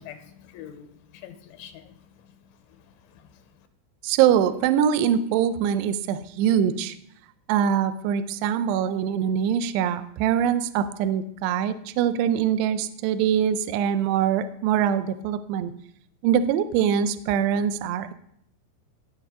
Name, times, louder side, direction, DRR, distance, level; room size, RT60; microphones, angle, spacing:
voice 1, 0.0-1.9 3.1-3.4, left 9 dB, 85° left, 3.0 m, -45 dB
voice 2, 4.0-7.0 7.5-15.7 16.2-18.1, right 9 dB, 85° right, 2.4 m, -23 dB
18.0 x 6.1 x 3.6 m
omnidirectional pair, 5.5 m